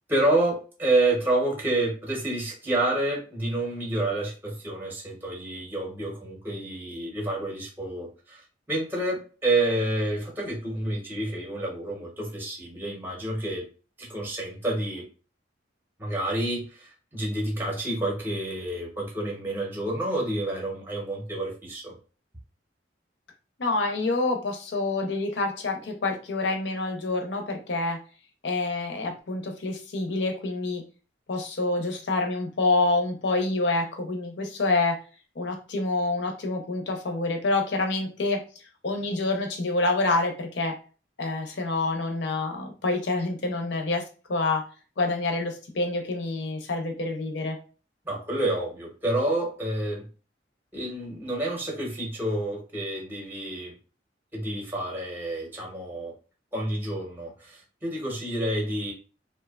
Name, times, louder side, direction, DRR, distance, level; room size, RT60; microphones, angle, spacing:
voice 1, 0.1-13.6 14.0-15.0 16.0-21.9 48.1-50.1 50.7-53.7 54.3-56.1 56.5-58.9, right 1 dB, 10° right, -1 dB, 0.6 m, -29 dB
voice 2, 23.6-28.0 28.4-30.8 31.3-34.9 35.4-38.4 38.8-40.7 41.2-44.0 44.3-44.7 45.0-47.6, left 2 dB, 70° left, 3 dB, 0.6 m, -27 dB
2.7 x 2.1 x 2.2 m, 0.35 s
head